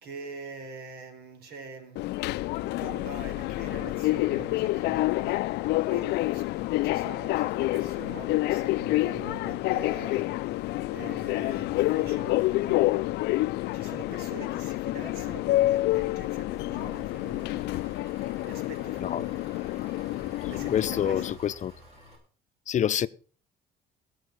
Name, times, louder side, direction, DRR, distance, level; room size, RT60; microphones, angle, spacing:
voice 1, 0.0-12.9 13.6-17.7 18.4-19.4 20.5-21.4, right 4 dB, 75° right, 3.9 m, -45 dB
Subway metro underground, 2.0-21.3, left 18 dB, 85° left, 0.5 m, -28 dB
Engine, 16.7-22.2, equal, 40° right, 7.4 m, -50 dB
voice 2, 20.7-21.7 22.7-23.1, left 9 dB, 45° left, 0.7 m, -27 dB
17.5 x 6.5 x 6.4 m
cardioid pair, 110°, 17 cm